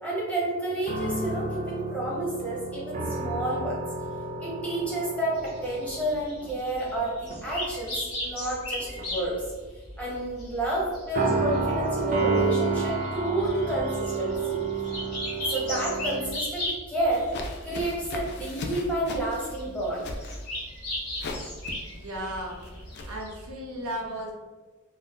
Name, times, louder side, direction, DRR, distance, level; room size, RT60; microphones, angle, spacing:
voice 1, 0.0-3.8 4.4-5.3 5.6-9.3 10.0-14.6 15.5-17.3 17.6-20.0, right 1 dB, 5° left, -6 dB, 0.8 m, -30 dB
sound 1, 0.8-6.9 7.3-7.6 8.5-9.3 11.1-16.3, right 3 dB, 35° right, 0.4 m, -30 dB
sound 2, 5.4-23.5, left 1 dB, 85° left, 1.4 m, -38 dB
sound 3, 17.1-23.1, left 2 dB, 50° left, 0.3 m, -39 dB
voice 2, 21.9-22.6 23.0-24.3, equal, 90° right, -2 dB, 0.7 m, -35 dB
2.6 x 2.2 x 3.6 m, 1.3 s
head